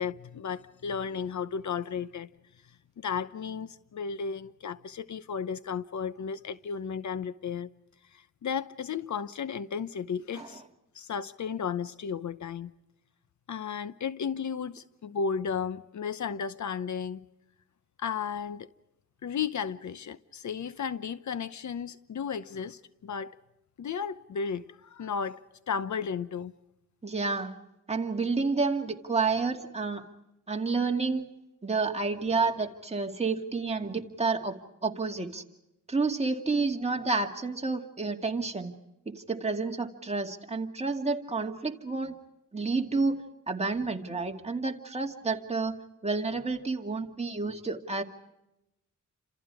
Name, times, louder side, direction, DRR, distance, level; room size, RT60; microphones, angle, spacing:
voice 1, 0.0-2.3 3.0-7.7 8.1-10.6 10.9-12.7 13.5-17.3 18.0-18.7 19.2-23.4 23.8-26.5, left 6 dB, 65° left, 0.9 m, -34 dB
voice 2, 27.0-27.6 27.9-30.0 30.5-31.2 31.6-34.6 34.8-35.4 35.9-38.7 39.1-42.2 42.5-45.7 46.0-48.0, right 4 dB, 20° right, 2.4 m, -30 dB
29.5 x 26.5 x 4.8 m
wide cardioid pair, 120°, 31 cm